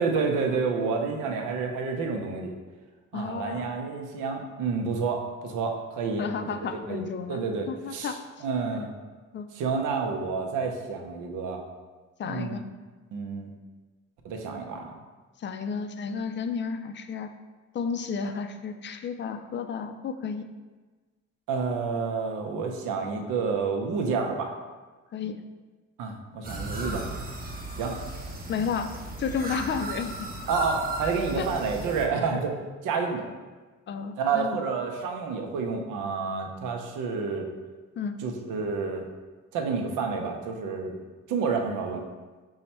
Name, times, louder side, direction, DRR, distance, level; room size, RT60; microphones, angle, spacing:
voice 1, 0.0-2.5 3.1-6.5 6.9-7.0 7.3-8.9 9.5-11.6 12.2-12.5 13.1-13.5 14.2-15.0 21.5-24.5 26.0-27.2 27.8-28.0 30.5-32.6 32.8-33.2 34.2-37.5 38.2-39.1 39.5-41.0 41.3-42.0, right 5 dB, 90° right, 3 dB, 0.6 m, -29 dB
voice 2, 3.1-3.7 6.2-7.4 7.7-8.2 9.3-9.5 12.2-12.6 15.4-17.3 17.7-20.5 25.1-25.4 28.5-28.9 29.2-30.3 31.4-31.5 33.9-34.6 38.0-38.2, left 6 dB, 40° left, 8 dB, 0.4 m, -32 dB
sound 1, 26.4-32.1, right 2 dB, 30° right, 0.8 m, -35 dB
5.4 x 2.1 x 4.2 m, 1.3 s
cardioid pair, 90°, 30 cm